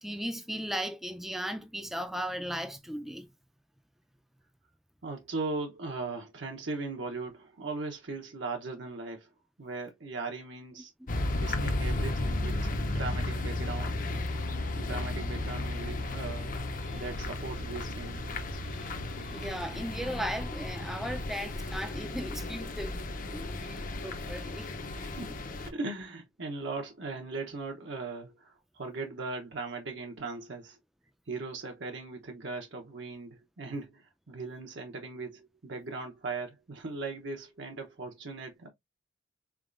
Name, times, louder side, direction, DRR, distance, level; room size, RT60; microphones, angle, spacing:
voice 1, 0.0-3.3 11.0-11.1 16.8-17.0 18.7-18.9 19.2-24.8, equal, ahead, 0.4 m, -37 dB
voice 2, 5.0-9.3 9.6-10.9 11.4-16.5 16.9-18.3 25.0-25.3 25.6-30.8 31.3-38.7, right 3 dB, 65° right, 0.8 m, -39 dB
sound 1, 11.1-25.7, left 2 dB, 40° left, 0.6 m, -34 dB
4.0 x 3.5 x 2.5 m
head